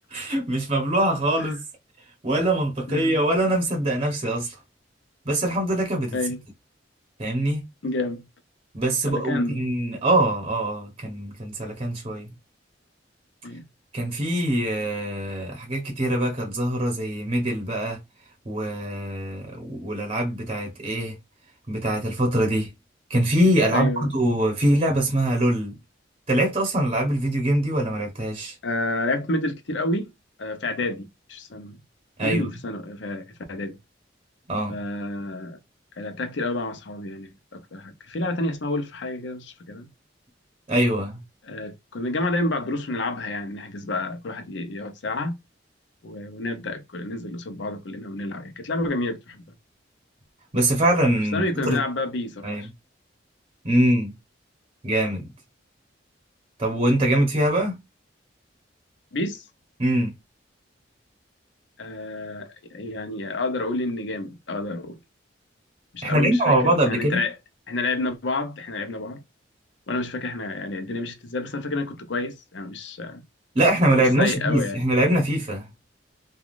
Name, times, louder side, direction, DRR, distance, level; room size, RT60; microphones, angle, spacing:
voice 1, 0.1-1.6 2.2-4.6 5.3-6.2 7.2-7.6 8.7-12.3 13.9-18.0 18.4-21.2 21.7-22.7 23.1-25.7 26.3-28.5 32.2-32.5 34.5-34.8 40.7-41.2 50.5-51.8 52.4-52.7 53.6-54.1 54.8-55.2 56.6-57.7 59.8-60.1 66.0-67.2 73.5-75.7, right 1 dB, 30° right, 0.8 m, -23 dB
voice 2, 2.9-3.2 6.1-6.4 7.8-8.2 9.1-9.6 13.4-13.6 23.7-24.2 28.6-30.1 30.4-31.8 32.2-33.8 34.7-35.6 36.0-39.9 41.4-45.3 46.0-49.4 51.3-52.7 53.7-53.8 59.1-59.4 61.8-65.0 65.9-67.3 67.7-69.2 69.9-73.2 74.2-74.8, left 2 dB, 70° left, 0.7 m, -29 dB
3.3 x 2.3 x 2.4 m
head